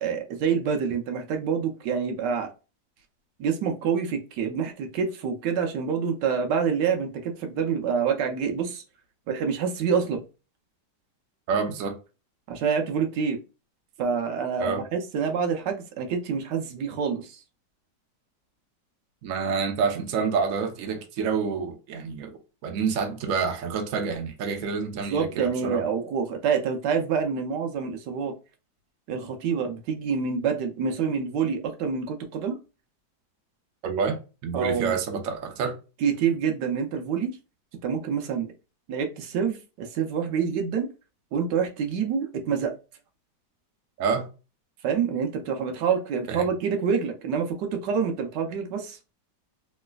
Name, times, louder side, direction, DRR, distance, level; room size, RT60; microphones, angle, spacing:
voice 1, 0.0-2.5 3.4-8.8 9.3-10.2 12.5-13.4 14.0-17.4 25.1-28.4 29.1-32.6 34.5-35.0 36.0-37.4 37.8-38.5 38.9-40.9 41.3-42.7 44.8-49.0, right 6 dB, 80° right, 1.2 m, -27 dB
voice 2, 11.5-12.0 14.6-14.8 19.2-25.8 33.8-35.8 44.0-44.3 46.3-46.4, right 5 dB, 60° right, 1.0 m, -28 dB
3.1 x 3.1 x 2.2 m
omnidirectional pair, 1.8 m